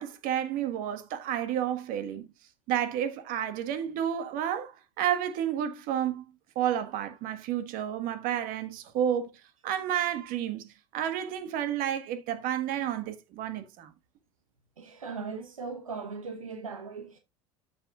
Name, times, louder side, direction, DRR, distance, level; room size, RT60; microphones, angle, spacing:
voice 1, 0.0-2.3 2.7-6.2 6.5-9.3 9.6-13.9, right 10 dB, 55° right, 1.6 m, -31 dB
voice 2, 14.8-17.2, right 4 dB, 90° right, 1.1 m, -38 dB
13.5 x 5.7 x 2.4 m
hypercardioid pair, 75°, 17 cm